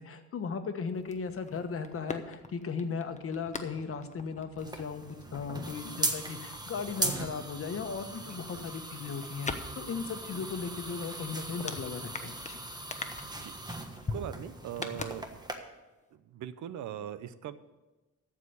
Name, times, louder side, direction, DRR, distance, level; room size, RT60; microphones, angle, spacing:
voice 1, 0.0-5.0 5.3-12.6, left 5 dB, 45° left, 8 dB, 1.2 m, -37 dB
sound 1, 0.9-7.5 7.8-15.7 16.0-16.1, left 3 dB, 25° left, 1.0 m, -44 dB
sound 2, 4.6-15.5, right 2 dB, 15° right, 1.3 m, -39 dB
voice 2, 14.1-15.4 16.1-17.6, right 10 dB, 70° right, 14 dB, 0.8 m, -41 dB
13.5 x 5.0 x 8.2 m, 1.1 s
cardioid pair, 90°, 30 cm